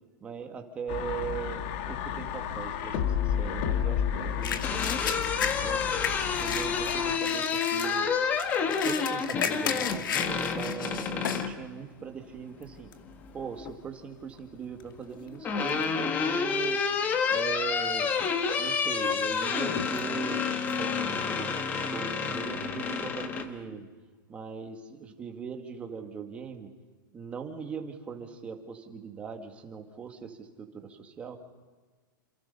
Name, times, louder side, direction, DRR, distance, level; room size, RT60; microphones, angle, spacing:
voice 1, 0.2-5.8 6.4-8.1 8.8-12.9 13.3-16.8 17.3-18.1 18.6-21.5 21.9-23.9 24.3-26.7 27.1-31.4, right 6 dB, 10° right, 4 dB, 1.9 m, -40 dB
sound 1, 0.9-7.2, left 9 dB, 30° left, 1.5 m, -31 dB
Creaky Door, 4.3-11.6 13.0-13.7 15.0-23.5, left 6 dB, 15° left, 1.3 m, -29 dB
sound 2, 4.4-11.5 12.0-12.1 12.6-13.0 13.7-13.9 14.2-15.4 15.7-16.2 16.6-16.7 17.6-18.1 18.5-21.6, left 8 dB, 70° left, 2.3 m, -35 dB
28.0 x 28.0 x 5.5 m, 1.4 s
supercardioid pair, 175°, 11 cm